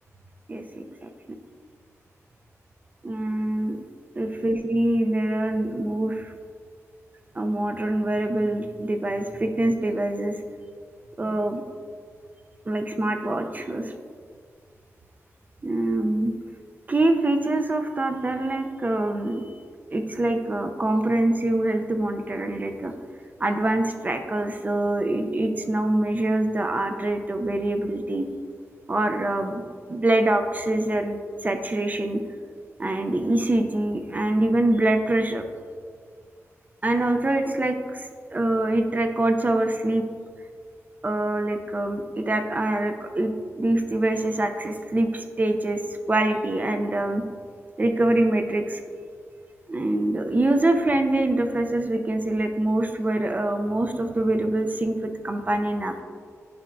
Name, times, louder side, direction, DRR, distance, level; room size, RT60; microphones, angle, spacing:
voice 1, 0.5-1.1 3.0-3.8 4.2-6.3 7.4-10.3 11.2-11.6 12.7-13.9 15.6-16.3 16.9-19.4 19.9-22.9 23.4-28.3 28.9-29.6 29.9-32.2 32.8-35.4 36.8-40.0 41.0-45.8 46.1-47.2 47.8-48.8 49.7-56.0, right 1 dB, 30° right, 5 dB, 0.5 m, -24 dB
9.5 x 5.7 x 2.5 m, 2.1 s
wide cardioid pair, 115°, 6 cm